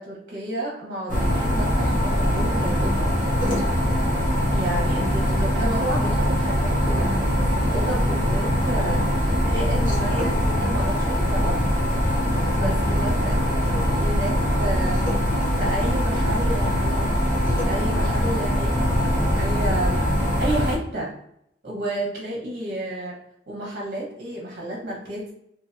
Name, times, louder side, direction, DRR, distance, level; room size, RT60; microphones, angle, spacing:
voice 1, 0.0-3.1 4.5-9.1 9.5-11.6 12.5-15.0 15.6-17.2 17.6-20.0 20.4-21.2 21.6-23.2 23.5-25.3, right 1 dB, 50° right, -3 dB, 1.0 m, -31 dB
sound 1, 1.1-20.8, equal, 50° left, 0.8 m, -22 dB
2.9 x 2.7 x 2.5 m, 0.74 s
head